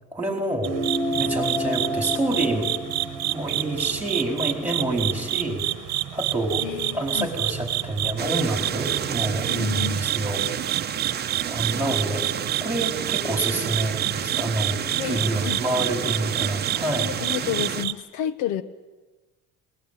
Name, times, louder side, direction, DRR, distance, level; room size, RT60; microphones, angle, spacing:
voice 1, 0.1-0.8 1.1-2.7 3.3-5.6 6.1-6.7 6.9-10.7 11.4-12.3 12.6-17.1, right 1 dB, 5° right, 2 dB, 4.5 m, -27 dB
sound 1, 0.6-5.4, equal, 30° left, 5.6 m, -31 dB
sound 2, 0.6-17.9, right 14 dB, 60° right, 1.2 m, -29 dB
voice 2, 6.6-7.3 9.5-10.0 14.9-15.6 17.0-18.6, left 11 dB, 80° left, 13 dB, 1.0 m, -30 dB
sound 3, 8.2-17.9, right 9 dB, 35° right, 0.9 m, -31 dB
22.0 x 19.5 x 9.0 m, 1.2 s
cardioid pair, 130°, 30 cm